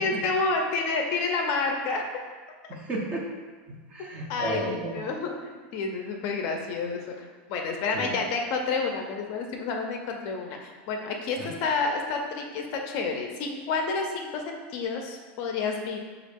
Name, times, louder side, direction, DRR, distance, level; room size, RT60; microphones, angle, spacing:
voice 1, 0.0-2.0 4.3-16.0, left 4 dB, 40° left, 2 dB, 0.4 m, -29 dB
voice 2, 2.7-3.2 3.7-5.0 7.9-8.1 11.4-11.5, right 1 dB, 20° right, -1 dB, 0.4 m, -33 dB
4.9 x 2.3 x 3.5 m, 1.4 s
supercardioid pair, 165°, 6 cm